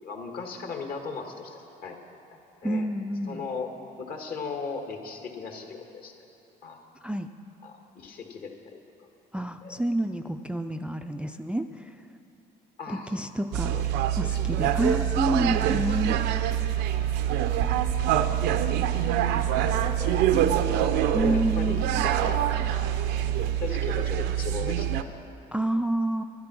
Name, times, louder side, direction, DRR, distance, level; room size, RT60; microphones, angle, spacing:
voice 1, 0.0-2.0 2.3-2.9 3.3-6.3 6.6-6.8 7.6-9.1 9.6-9.8 12.8-13.1 13.7-14.0 14.3-14.4 19.6-23.0 23.6-25.2, left 4 dB, 60° left, 3 dB, 1.7 m, -38 dB
voice 2, 2.6-3.4 7.0-7.3 9.3-11.9 12.9-13.8 14.2-16.2 21.1-21.8 25.5-26.2, right 1 dB, 5° right, 7 dB, 0.3 m, -28 dB
sound 1, 13.5-25.0, right 10 dB, 90° right, 0.6 m, -25 dB
12.0 x 10.5 x 6.1 m, 3.0 s
cardioid pair, 110°, 17 cm